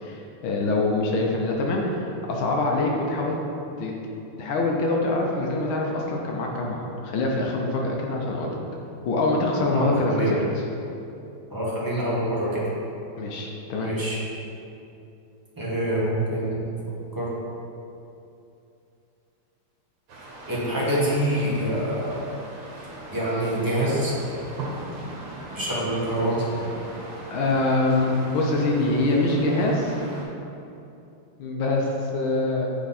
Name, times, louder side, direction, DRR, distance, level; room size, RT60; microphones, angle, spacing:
voice 1, 0.0-3.4 3.8-3.9 4.4-8.6 9.1-10.3 13.2-13.9 27.3-29.9 31.4-32.7, left 2 dB, 70° left, -1 dB, 1.5 m, -24 dB
voice 2, 9.7-10.4 11.5-12.6 13.8-14.2 15.6-16.7 17.1-17.3 20.5-22.2 23.1-24.1 25.5-26.4, right 1 dB, 15° right, -7 dB, 0.8 m, -25 dB
sound 1, 20.1-30.2, right 1 dB, 75° right, 2.1 m, -39 dB
8.2 x 3.8 x 4.2 m, 2.7 s
omnidirectional pair, 2.4 m